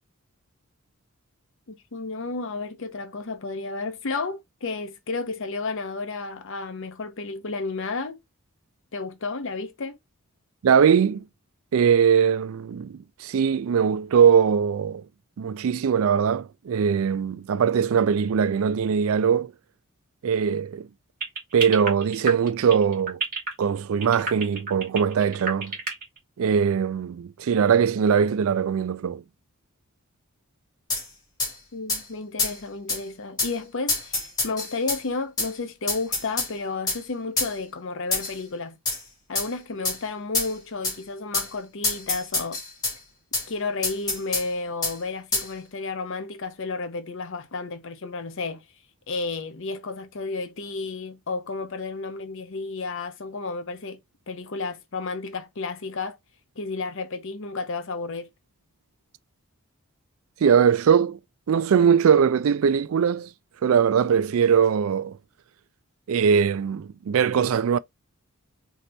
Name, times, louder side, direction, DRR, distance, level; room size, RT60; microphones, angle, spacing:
voice 1, 1.7-8.2 8.9-10.0 31.7-38.8 39.3-42.6 43.5-48.6 49.1-54.0 54.3-56.2 56.6-58.3, left 3 dB, 60° left, 0.7 m, -32 dB
voice 2, 10.6-11.2 11.7-15.0 15.4-19.5 20.2-20.9 21.5-23.2 23.6-25.7 26.4-29.2 60.4-61.2 61.5-63.3 63.6-65.2 66.1-67.8, right 7 dB, 65° right, 0.3 m, -21 dB
sound 1, 21.2-26.2, right 4 dB, 40° right, 1.5 m, -28 dB
sound 2, 30.9-31.0 31.4-31.5 31.9-32.0 32.4-32.6 32.9-33.0 33.4-33.5 33.9-35.0 35.4-35.5 35.9-36.5 36.9-37.0 37.4-37.5 38.1-38.4 38.9-39.0 39.4-39.5 39.8-40.0 40.3-40.5 40.8-41.0 41.3-41.5 41.8-43.0 43.3-43.5 43.8-44.5 44.8-45.0 45.3-45.5, left 3 dB, 15° left, 1.7 m, -26 dB
3.9 x 2.9 x 3.3 m
head